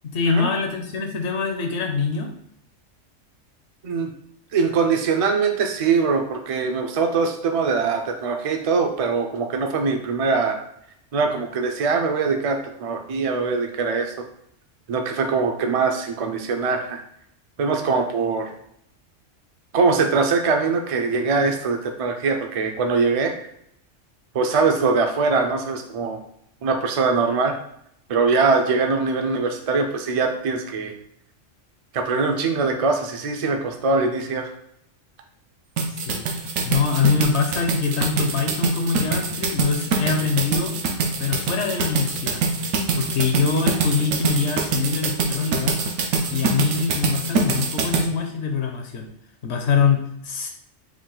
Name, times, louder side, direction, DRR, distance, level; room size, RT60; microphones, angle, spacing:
voice 1, 0.0-2.3 35.9-36.3 36.6-40.8 41.2-42.4 42.9-45.8 46.3-49.1 49.4-50.5, left 5 dB, 65° left, 3 dB, 0.9 m, -24 dB
voice 2, 4.5-10.6 11.1-14.1 14.9-17.0 17.6-18.5 19.7-23.3 24.3-26.2 26.6-27.5 28.1-30.9 31.9-34.5, right 4 dB, 50° right, 4 dB, 0.4 m, -22 dB
sound 1, 35.8-48.1, right 4 dB, 90° right, 1.1 m, -24 dB
4.8 x 2.3 x 3.8 m, 0.71 s
omnidirectional pair, 1.3 m